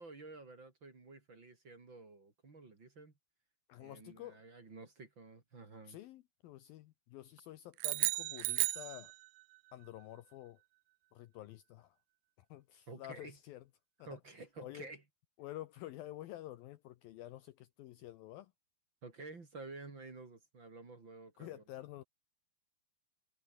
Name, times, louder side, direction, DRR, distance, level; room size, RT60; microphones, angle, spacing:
voice 1, 0.0-3.1 3.8-6.0 12.9-13.4 14.0-15.0 19.0-21.6, right 3 dB, 30° right, 3.6 m, -51 dB
voice 2, 3.7-4.4 5.9-9.1 9.7-10.6 11.1-12.0 12.4-13.6 14.0-14.1 14.6-14.9 15.4-18.5 21.4-22.0, left 14 dB, 75° left, 2.4 m, -49 dB
sound 1, 7.8-9.6, right 23 dB, 85° right, 2.7 m, -34 dB
omnidirectional pair, 4.8 m